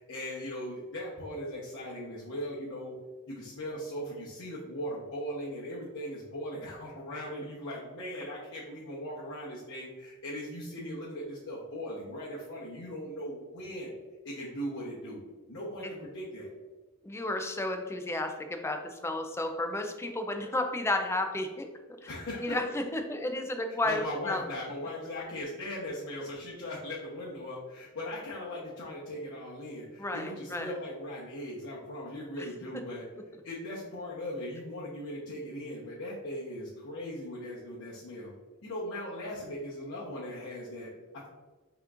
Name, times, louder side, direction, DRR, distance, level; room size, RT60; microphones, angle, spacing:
voice 1, 0.0-3.0 3.3-13.9 14.2-15.2 15.5-16.5 22.1-22.6 23.8-33.1 33.4-38.3 38.6-41.3, equal, 60° left, -8 dB, 0.9 m, -39 dB
voice 2, 17.0-21.7 22.0-22.1 22.4-24.4 30.0-30.8 32.4-32.5, left 2 dB, 10° left, 4 dB, 0.4 m, -32 dB
5.6 x 3.0 x 2.4 m, 1.3 s
head